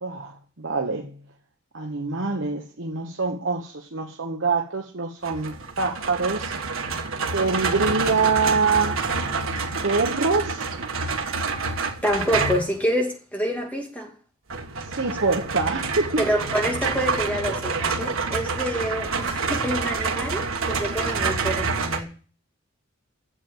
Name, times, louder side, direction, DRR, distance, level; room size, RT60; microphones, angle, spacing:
voice 1, 0.0-1.1 1.7-6.5 7.3-9.0 9.5-10.6 14.9-16.3, right 4 dB, 60° right, 1.2 m, -25 dB
sound 1, 5.2-12.8 14.5-22.0, right 4 dB, 80° right, 1.4 m, -27 dB
voice 2, 12.0-14.1 16.2-22.1, equal, 5° left, 2.3 m, -27 dB
8.6 x 7.6 x 8.8 m
head